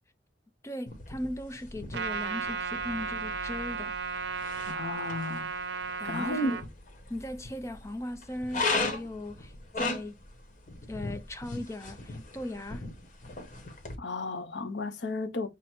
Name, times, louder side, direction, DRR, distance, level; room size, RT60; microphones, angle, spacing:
voice 1, 0.6-3.9 6.0-6.6 7.1-10.2 10.9-12.9, left 1 dB, 15° left, 0.4 m, -38 dB
sound 1, 0.9-13.9, left 3 dB, 40° left, 0.9 m, -38 dB
Trumpet, 1.9-6.6, right 5 dB, 70° right, 0.6 m, -34 dB
voice 2, 4.6-5.5 6.0-6.6 14.0-15.5, left 2 dB, 70° left, 0.7 m, -33 dB
5.9 x 2.0 x 4.4 m
head